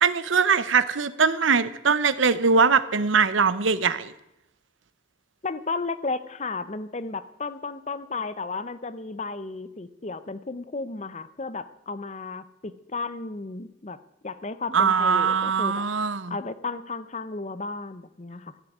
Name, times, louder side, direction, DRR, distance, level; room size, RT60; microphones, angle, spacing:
voice 1, 0.0-4.1 14.7-16.3, right 5 dB, 90° right, 15 dB, 0.8 m, -21 dB
voice 2, 5.4-14.0 14.2-15.8 16.3-18.5, left 3 dB, 35° left, 14 dB, 0.7 m, -33 dB
14.5 x 7.6 x 9.8 m, 0.88 s
head